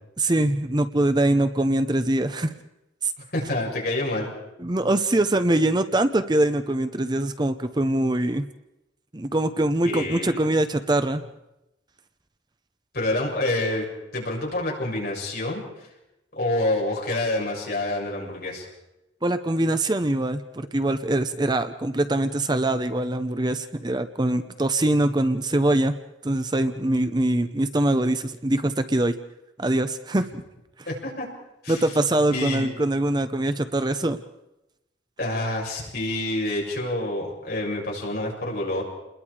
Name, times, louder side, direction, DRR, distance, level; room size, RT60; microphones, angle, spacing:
voice 1, 0.2-2.5 3.0-3.1 4.6-8.4 9.1-11.2 19.2-26.0 26.2-29.1 29.6-30.4 31.7-34.2, right 1 dB, 25° right, 10 dB, 0.7 m, -23 dB
voice 2, 3.3-4.3 9.8-10.4 12.9-13.8 14.1-15.9 16.3-18.7 30.9-31.3 31.6-31.8 32.3-32.8 35.2-38.8, left 1 dB, 55° left, -2 dB, 6.9 m, -27 dB
29.0 x 21.0 x 4.9 m, 0.92 s
head